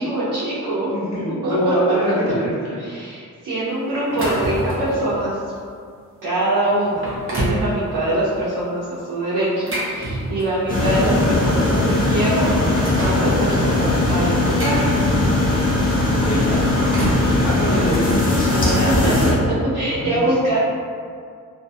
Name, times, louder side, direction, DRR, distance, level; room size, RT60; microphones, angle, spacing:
voice 1, 0.0-0.9 1.4-1.8 2.8-5.4 6.2-7.1 7.3-12.5 12.9-14.8 18.5-20.6, right 1 dB, 90° right, -10 dB, 0.7 m, -23 dB
voice 2, 0.9-2.7 16.2-16.6 17.4-18.1 19.8-20.2, equal, 60° left, -7 dB, 0.9 m, -24 dB
sound 1, 3.9-5.0 5.6-5.7 6.3-6.4 6.9-7.7 9.4-10.7 11.7-11.8 12.2-13.2 14.1-15.5 16.5-17.3, right 1 dB, 40° right, 0.8 m, -27 dB
sound 2, 10.7-19.3, left 2 dB, 25° left, 0.8 m, -19 dB
2.6 x 2.6 x 2.3 m, 2.2 s
cardioid pair, 65°, 32 cm